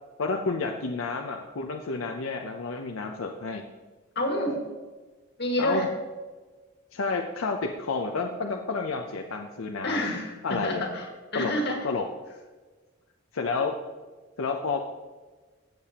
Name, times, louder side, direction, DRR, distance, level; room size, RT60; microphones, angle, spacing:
voice 1, 0.2-3.6 5.6-5.9 6.9-10.1 10.4-10.9 11.3-11.5 11.8-12.1 13.3-13.8 14.4-14.8, left 4 dB, 90° left, 3 dB, 0.6 m, -30 dB
voice 2, 4.2-4.6 5.4-5.9 9.8-11.9, left 1 dB, 55° left, 2 dB, 1.8 m, -28 dB
15.5 x 6.8 x 2.9 m, 1.3 s
head